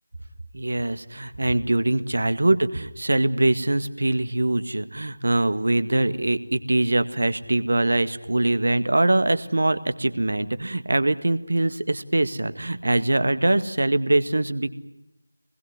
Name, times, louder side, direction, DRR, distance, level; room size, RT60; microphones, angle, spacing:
voice 1, 0.5-14.7, right 2 dB, 55° right, 12 dB, 1.8 m, -23 dB
25.5 x 20.5 x 9.7 m, 0.91 s
figure-of-eight pair, 165°, 0 cm